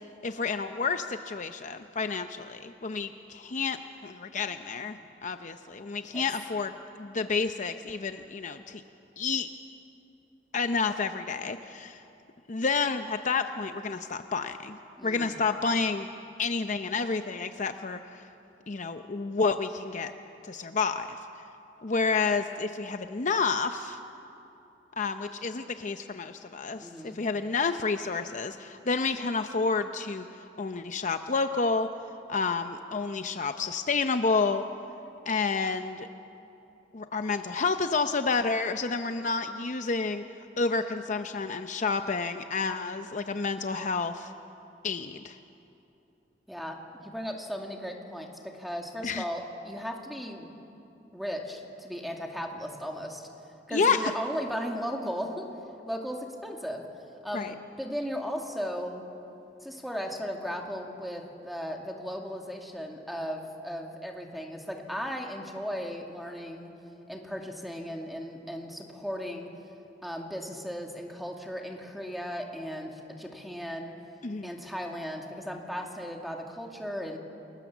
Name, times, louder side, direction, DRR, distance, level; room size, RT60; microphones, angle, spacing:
voice 1, 0.2-5.0 5.2-8.8 9.2-9.5 10.5-12.0 12.5-16.1 16.4-18.2 18.7-20.1 20.4-21.1 21.8-24.0 25.0-30.3 30.6-31.9 32.3-34.6 35.3-36.1 36.9-40.2 40.6-44.3 44.8-45.4 49.0-49.2 53.7-54.1 57.3-57.5 74.2-74.5, left 4 dB, 45° left, 8 dB, 0.7 m, -30 dB
voice 2, 4.8-5.1 6.1-6.2 15.0-15.4 26.8-27.2 46.5-46.8 47.0-50.5 51.1-53.3 53.7-55.5 55.9-56.8 57.2-59.0 59.6-66.7 67.1-69.5 70.0-73.9 74.4-77.2, equal, ahead, 1 dB, 2.2 m, -36 dB
29.0 x 20.0 x 7.2 m, 2.8 s
head